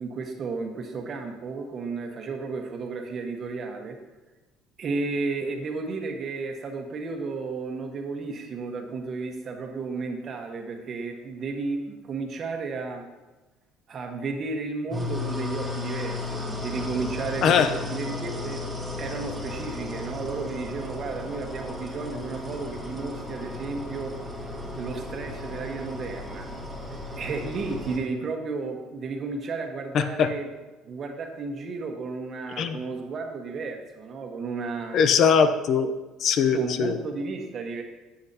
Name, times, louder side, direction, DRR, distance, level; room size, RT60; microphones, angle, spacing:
voice 1, 0.0-4.0 4.8-13.0 13.9-18.6 19.0-24.1 24.7-26.5 26.9-30.5 30.8-35.0 36.5-37.8, right 4 dB, 45° right, 3 dB, 1.3 m, -33 dB
sound 1, 14.9-28.0, left 2 dB, 5° right, 1.7 m, -35 dB
voice 2, 29.9-30.3 32.6-32.8 34.9-35.9 36.2-37.0, left 6 dB, 55° left, 10 dB, 0.6 m, -21 dB
10.0 x 8.0 x 2.8 m, 1.1 s
supercardioid pair, 95°, 0 cm